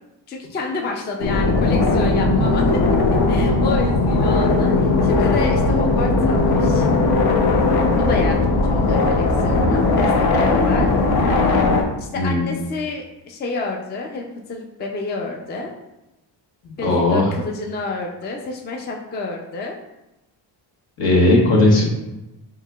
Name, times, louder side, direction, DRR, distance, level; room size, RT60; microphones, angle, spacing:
voice 1, 0.3-2.8 3.3-6.9 8.0-10.9 12.0-14.2 14.5-15.7 16.8-19.7, left 3 dB, 25° left, 1 dB, 0.4 m, -29 dB
sound 1, 1.2-11.8, left 3 dB, 55° left, 0.7 m, -18 dB
voice 2, 12.1-12.6 16.8-17.3 21.0-21.8, left 2 dB, 70° left, -4 dB, 1.4 m, -16 dB
4.5 x 3.7 x 2.3 m, 0.97 s
cardioid pair, 125°, 45 cm